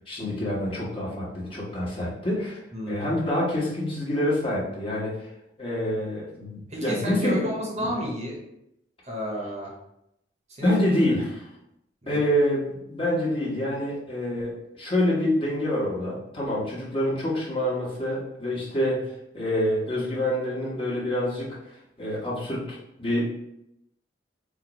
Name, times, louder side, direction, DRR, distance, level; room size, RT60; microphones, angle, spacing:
voice 1, 0.1-2.6 2.9-5.2 5.6-7.4 7.8-7.9 10.6-11.5 12.1-19.0 19.3-21.5 22.0-23.3, left 1 dB, 30° left, -6 dB, 1.2 m, -26 dB
voice 2, 2.7-3.1 6.7-8.4 9.0-9.7 10.5-10.7 12.0-12.3, equal, 40° right, -2 dB, 0.9 m, -31 dB
4.2 x 2.5 x 3.0 m, 0.80 s
head